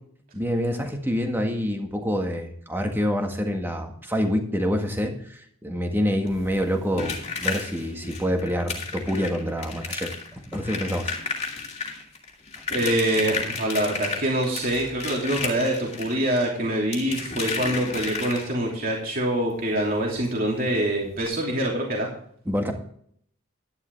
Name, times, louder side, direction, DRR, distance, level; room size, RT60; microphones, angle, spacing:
voice 1, 0.3-11.1 22.4-22.7, equal, 10° right, 3 dB, 1.7 m, -27 dB
sound 1, 6.3-18.8 20.2-20.3 20.6-20.8 21.2-21.3, left 4 dB, 30° left, 2.5 m, -33 dB
voice 2, 12.7-22.1, right 1 dB, 45° right, -2 dB, 3.0 m, -25 dB
11.5 x 11.0 x 3.5 m, 0.63 s
head